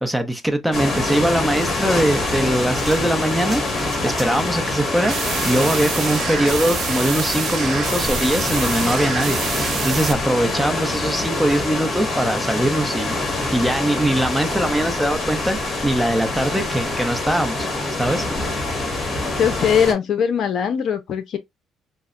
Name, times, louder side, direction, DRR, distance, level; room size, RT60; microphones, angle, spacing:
voice 1, 0.0-3.6 4.0-5.2 5.4-13.2 13.5-17.7 18.0-18.3, right 1 dB, 5° right, 0.8 m, -21 dB
sound 1, 0.7-19.9, left 2 dB, 30° left, 1.6 m, -25 dB
sound 2, 1.5-4.6, right 2 dB, 20° right, 1.2 m, -40 dB
sound 3, 5.0-10.1, right 6 dB, 50° right, 0.7 m, -27 dB
voice 2, 19.2-21.4, left 7 dB, 60° left, 0.6 m, -20 dB
5.3 x 2.1 x 2.5 m
cardioid pair, 110°, 0 cm